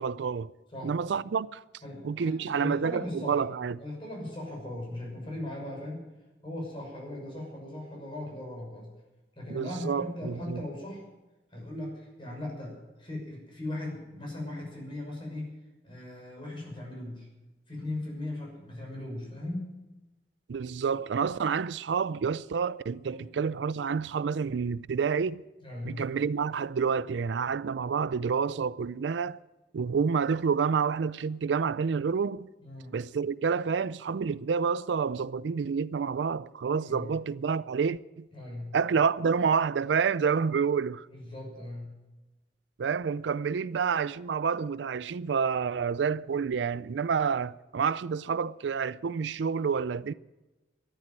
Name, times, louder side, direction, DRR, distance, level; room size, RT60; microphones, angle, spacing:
voice 1, 0.0-0.5 0.8-1.6 2.0-3.8 9.5-10.6 20.5-25.4 25.9-29.4 29.7-32.5 32.9-38.3 38.7-41.1 42.8-50.1, right 6 dB, 75° right, 0.4 m, -28 dB
voice 2, 1.8-3.4 3.8-6.0 6.4-8.9 9.4-11.1 11.5-15.5 15.8-17.3 17.7-19.7 23.0-23.3 25.6-26.0 32.6-33.0 36.8-37.1 38.3-38.7 41.1-41.9, left 1 dB, 30° left, 6.2 m, -38 dB
14.0 x 12.0 x 7.5 m
head